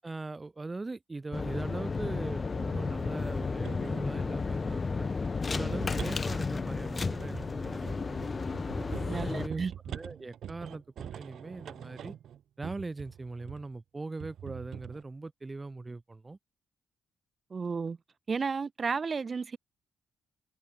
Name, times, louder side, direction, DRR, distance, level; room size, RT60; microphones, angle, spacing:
voice 1, 0.0-5.1 5.5-8.0 8.7-12.1 12.6-16.4, right 3 dB, 20° right, 7.4 m, -40 dB
sound 1, 1.3-9.5, left 4 dB, 30° left, 1.8 m, -33 dB
sound 2, 2.5-4.1 5.2-13.7 14.2-15.0, right 10 dB, 65° right, 1.3 m, -45 dB
voice 2, 9.1-9.7 10.6-10.8 17.5-18.0 18.3-19.6, right 5 dB, 35° right, 1.3 m, -32 dB
cardioid pair, 90°, 0 cm